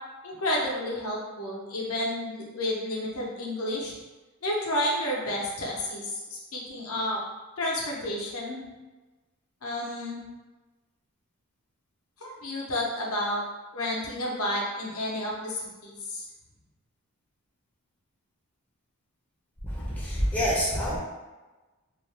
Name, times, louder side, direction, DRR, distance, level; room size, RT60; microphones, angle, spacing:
voice 1, 0.2-3.9 4.4-7.2 7.6-8.6 9.6-10.2 12.2-13.4 13.7-16.2, left 1 dB, 70° left, -3 dB, 0.7 m, -31 dB
voice 2, 19.7-21.0, equal, 5° left, -7 dB, 0.5 m, -27 dB
2.5 x 2.1 x 3.2 m, 1.2 s
head